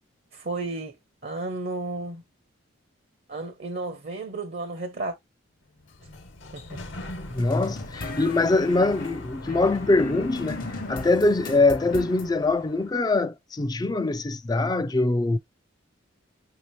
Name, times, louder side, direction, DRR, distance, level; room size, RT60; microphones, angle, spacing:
voice 1, 0.3-0.9 1.2-2.2 3.3-5.2 6.5-6.8, right 2 dB, 50° right, 0.7 m, -33 dB
Sliding door, 5.7-13.1, left 2 dB, 65° left, 1.1 m, -41 dB
voice 2, 7.2-15.4, left 2 dB, 20° left, 0.3 m, -23 dB
sound 1, 7.4-12.3, left 2 dB, 45° left, 0.8 m, -37 dB
5.9 x 2.8 x 3.1 m
head